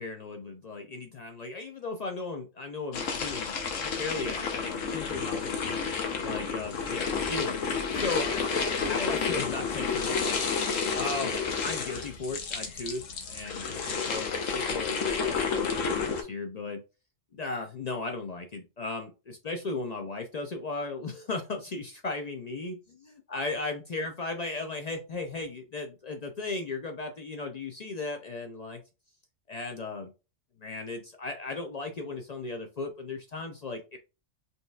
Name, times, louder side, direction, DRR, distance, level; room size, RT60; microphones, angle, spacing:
voice 1, 0.0-5.8 6.2-7.6 7.9-8.3 8.8-10.5 10.9-13.0 13.3-16.8 17.3-22.8 23.3-28.8 29.5-30.1 30.6-34.0, left 3 dB, 60° left, 4 dB, 0.4 m, -36 dB
sound 1, 2.9-16.2, left 5 dB, 85° left, 1.2 m, -30 dB
5.3 x 3.0 x 2.3 m, 0.30 s
omnidirectional pair, 1.3 m